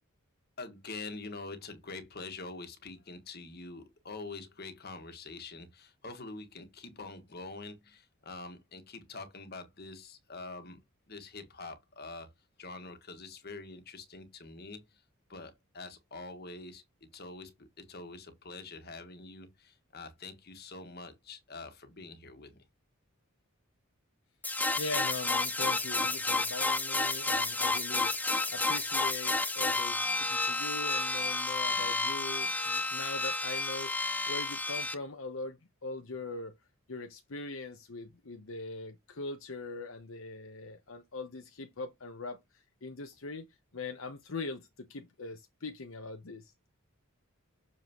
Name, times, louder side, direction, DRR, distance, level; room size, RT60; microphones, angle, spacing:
voice 1, 0.6-10.8 11.1-12.3 12.6-15.0 15.3-22.6, left 3 dB, 50° left, 1.6 m, -45 dB
sound 1, 24.4-34.9, left 3 dB, 10° left, 0.6 m, -31 dB
voice 2, 24.8-33.9 34.3-36.6 36.9-43.5 43.7-46.5, left 3 dB, 70° left, 0.9 m, -41 dB
6.8 x 5.5 x 3.0 m
head